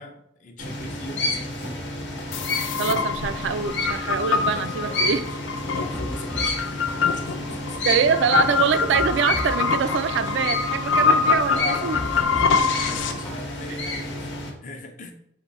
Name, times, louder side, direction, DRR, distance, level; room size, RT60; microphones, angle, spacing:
voice 1, 0.0-1.7 4.5-7.8 11.5-15.1, left 3 dB, 45° left, 5 dB, 0.6 m, -39 dB
sound 1, 0.6-14.5, left 2 dB, 70° left, 0.9 m, -30 dB
sound 2, 2.3-13.1, left 5 dB, 90° left, 0.4 m, -25 dB
voice 2, 2.8-5.2 7.9-12.0, right 6 dB, 70° right, 11 dB, 0.3 m, -24 dB
sound 3, 5.6-6.6 6.9-7.5 8.0-8.1 8.6-9.6 9.9-10.5 11.0-11.1 11.6-12.6 12.9-13.5 13.8-13.9, equal, 5° left, 0.6 m, -35 dB
4.4 x 2.7 x 3.9 m, 0.75 s
head